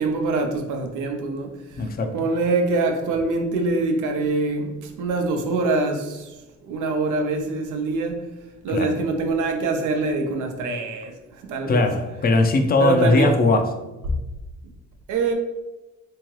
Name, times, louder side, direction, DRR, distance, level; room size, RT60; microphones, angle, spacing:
voice 1, 0.0-1.5 2.1-6.3 6.6-8.3 8.6-11.8 12.8-13.3 14.1-14.2 15.1-15.3, right 3 dB, 85° right, 0.7 m, -24 dB
voice 2, 1.8-2.2 8.7-8.9 11.7-13.8, left 2 dB, 30° left, 0.5 m, -20 dB
3.5 x 2.8 x 3.1 m
cardioid pair, 90°, 30 cm